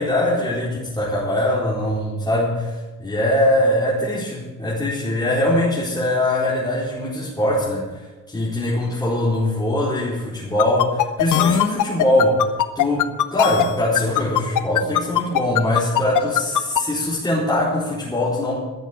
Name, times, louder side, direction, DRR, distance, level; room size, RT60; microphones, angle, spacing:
voice 1, 0.0-18.6, left 1 dB, 15° left, -8 dB, 4.4 m, -22 dB
sound 1, 10.6-16.8, left 12 dB, 80° left, 0.9 m, -19 dB
13.0 x 7.4 x 9.9 m, 1.2 s
cardioid pair, 90°, 30 cm